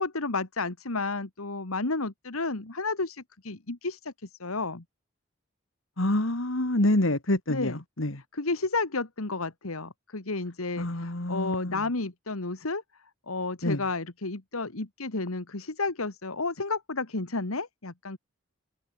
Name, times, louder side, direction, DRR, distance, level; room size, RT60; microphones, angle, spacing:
voice 1, 0.0-4.8 7.5-7.8 8.3-12.8 13.3-18.2, left 3 dB, 90° left, 1.9 m, -32 dB
voice 2, 6.0-8.2 10.8-11.8 13.6-13.8, left 1 dB, 70° left, 2.4 m, -27 dB
head